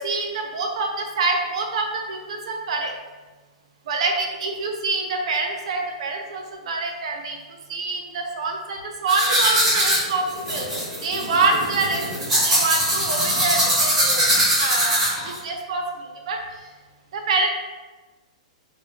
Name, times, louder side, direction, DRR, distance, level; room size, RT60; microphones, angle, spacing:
voice 1, 0.0-2.9 3.9-7.4 7.7-10.7 11.0-14.3 14.6-16.4 17.1-17.5, right 3 dB, 65° right, 2 dB, 0.6 m, -26 dB
Tooth brushing, 9.1-15.4, equal, 5° right, 1.2 m, -21 dB
3.6 x 2.2 x 3.5 m, 1.2 s
hypercardioid pair, 160°, 4 cm